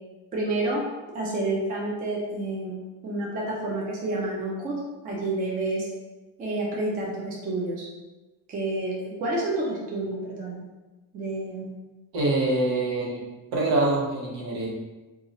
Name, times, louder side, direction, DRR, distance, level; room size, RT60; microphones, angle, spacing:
voice 1, 0.3-0.8 1.1-2.8 3.0-4.8 5.0-5.9 6.4-7.9 8.5-10.6 11.1-11.7, right 2 dB, 25° right, -4 dB, 0.4 m, -29 dB
voice 2, 12.1-13.2 13.5-14.7, right 2 dB, 70° right, -4 dB, 1.2 m, -25 dB
2.8 x 2.4 x 4.0 m, 1.1 s
cardioid pair, 175°, 39 cm